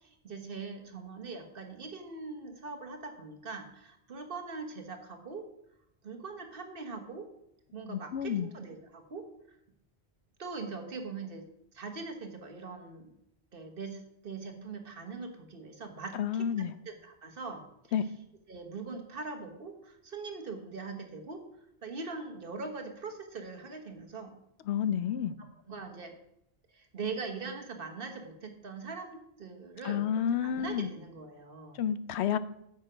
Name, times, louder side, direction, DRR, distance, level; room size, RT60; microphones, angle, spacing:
voice 1, 0.0-5.4 6.0-7.3 7.7-9.3 10.4-11.5 11.7-13.1 13.5-16.5 16.8-17.6 18.5-21.4 21.8-24.3 25.7-26.1 26.7-31.8, right 4 dB, 60° right, 4 dB, 1.4 m, -42 dB
voice 2, 7.9-8.5 16.1-16.7 17.9-18.1 24.7-25.3 29.8-30.9 31.7-32.4, left 9 dB, 85° left, 14 dB, 0.8 m, -30 dB
9.0 x 6.7 x 5.0 m, 0.79 s
omnidirectional pair, 1.1 m